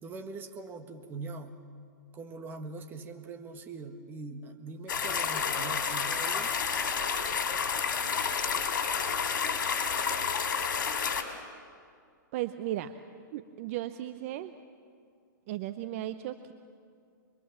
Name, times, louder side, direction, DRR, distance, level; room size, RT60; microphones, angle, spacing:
voice 1, 0.0-1.5 2.1-6.6, right 3 dB, 20° right, 6 dB, 1.6 m, -42 dB
sound 1, 4.9-11.2, left 6 dB, 80° left, 3.3 m, -30 dB
voice 2, 12.3-12.9 13.3-14.5 15.5-16.5, right 13 dB, 45° right, 10 dB, 0.8 m, -35 dB
25.0 x 22.5 x 7.5 m, 2.2 s
hypercardioid pair, 145°, 11 cm